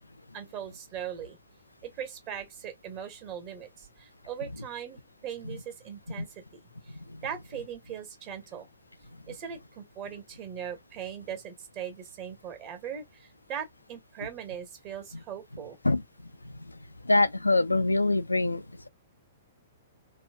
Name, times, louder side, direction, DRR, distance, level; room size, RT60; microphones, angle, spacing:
voice 1, 0.3-1.4 1.8-6.4 6.9-7.0 7.2-8.7 9.3-15.8, right 9 dB, 35° right, 1.3 m, -40 dB
voice 2, 17.0-18.6, left 2 dB, 85° left, 0.3 m, -24 dB
3.6 x 2.4 x 2.3 m
figure-of-eight pair, 110°, 0 cm